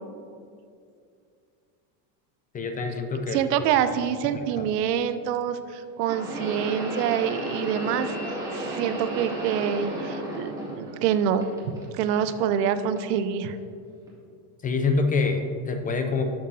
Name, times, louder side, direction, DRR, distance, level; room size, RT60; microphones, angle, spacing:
voice 1, 2.5-3.4 4.6-4.7 14.6-16.2, left 4 dB, 20° left, 5 dB, 0.3 m, -26 dB
voice 2, 3.3-8.1 8.5-11.5 11.9-13.6, right 9 dB, 90° right, 11 dB, 0.6 m, -26 dB
sound 1, 3.9-4.0 6.0-11.1 11.4-12.2 13.0-13.1 14.1-14.2, right 1 dB, 5° right, 2.0 m, -33 dB
10.5 x 7.1 x 2.7 m, 2.4 s
supercardioid pair, 120°, 46 cm